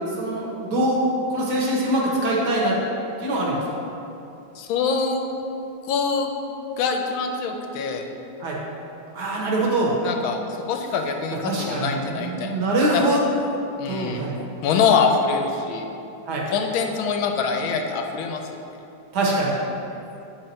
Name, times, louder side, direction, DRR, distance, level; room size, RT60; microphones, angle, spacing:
voice 1, 0.2-1.0 1.3-2.8 3.2-3.6 8.4-8.6 9.1-9.9 11.5-13.2 13.9-14.4 16.3-16.4 19.1-19.5, right 1 dB, 60° right, -3 dB, 1.5 m, -23 dB
voice 2, 4.5-5.2 5.8-6.3 6.8-8.1 10.0-12.5 12.9-13.0 13.8-14.3 14.6-15.9 16.5-18.4, left 5 dB, 90° left, 3 dB, 1.4 m, -24 dB
8.1 x 4.0 x 4.4 m, 2.9 s
omnidirectional pair, 2.2 m